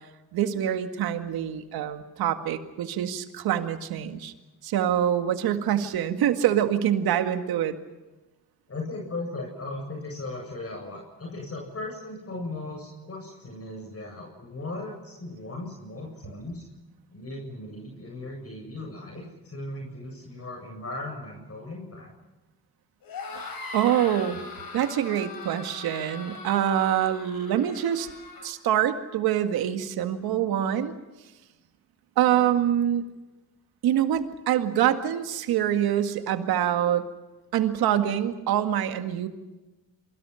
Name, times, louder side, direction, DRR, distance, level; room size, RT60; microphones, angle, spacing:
voice 1, 0.3-4.3 4.6-7.8 23.3-24.4 24.7-28.1 28.4-30.9 32.2-33.0 33.8-37.0 37.5-39.3, right 10 dB, 90° right, 8 dB, 2.0 m, -25 dB
voice 2, 8.7-16.6 17.1-22.1, left 2 dB, 40° left, 1 dB, 7.8 m, -37 dB
sound 1, 23.0-28.5, left 4 dB, 75° left, 7.9 m, -40 dB
28.5 x 23.0 x 5.8 m, 1.1 s
cardioid pair, 65°, 36 cm